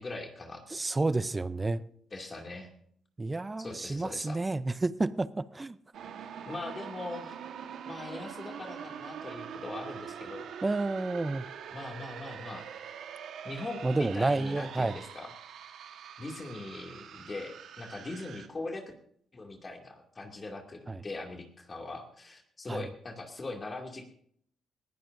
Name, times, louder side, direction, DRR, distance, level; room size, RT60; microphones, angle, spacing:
voice 1, 0.0-0.8 2.1-2.7 3.6-4.4 6.5-7.4 7.9-10.5 11.7-12.6 13.4-15.3 16.2-18.9 19.3-24.0, left 2 dB, 30° left, 2 dB, 2.4 m, -41 dB
voice 2, 0.7-1.9 3.2-5.8 10.6-11.4 13.8-15.0 20.9-21.0 22.7-22.8, right 2 dB, 20° right, 16 dB, 0.5 m, -30 dB
sound 1, 5.9-18.5, right 8 dB, 75° right, 1.3 m, -44 dB
20.0 x 15.0 x 2.6 m, 0.64 s
cardioid pair, 90°, 0 cm